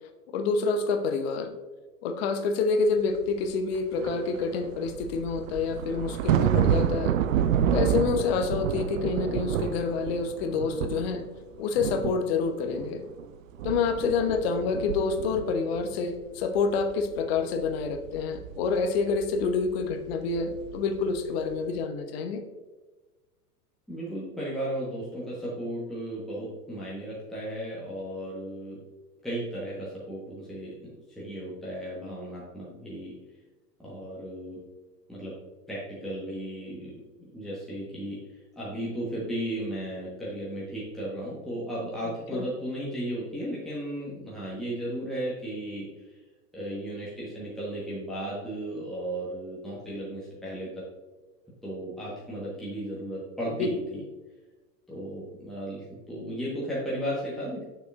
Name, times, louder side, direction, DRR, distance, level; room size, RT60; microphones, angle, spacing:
voice 1, 0.3-1.5 2.0-7.1 7.7-11.2 11.6-13.0 13.6-22.4 42.3-42.4 53.5-53.8, left 4 dB, 40° left, 7 dB, 0.8 m, -27 dB
sound 1, 3.2-3.3 3.7-11.4 11.7-13.3 13.5-16.1 16.4-21.3 21.5-21.8, right 9 dB, 55° right, 0.5 m, -30 dB
voice 2, 23.9-28.8 29.2-33.1 33.8-34.6 35.1-35.3 35.7-37.0 37.3-38.2 38.6-45.9 46.5-50.7 51.6-54.0 54.9-57.6, right 1 dB, ahead, -7 dB, 1.3 m, -35 dB
6.8 x 6.7 x 2.5 m, 1.2 s
figure-of-eight pair, 95°, 48 cm